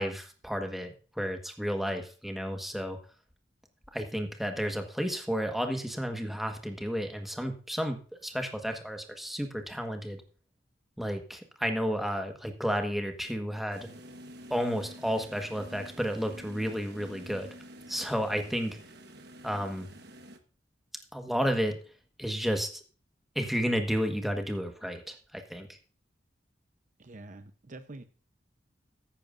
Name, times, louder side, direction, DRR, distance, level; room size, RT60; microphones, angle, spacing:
voice 1, 0.0-3.0 3.9-10.2 11.0-13.9 14.5-17.5 17.9-18.8 19.4-19.9 21.1-21.8 22.2-22.8 23.3-25.8, equal, ahead, 4 dB, 1.4 m, -32 dB
sound 1, 13.7-20.4, right 1 dB, 60° right, 1.3 m, -49 dB
voice 2, 27.0-28.0, right 2 dB, 45° right, 9 dB, 0.8 m, -46 dB
14.5 x 10.5 x 2.6 m, 0.39 s
head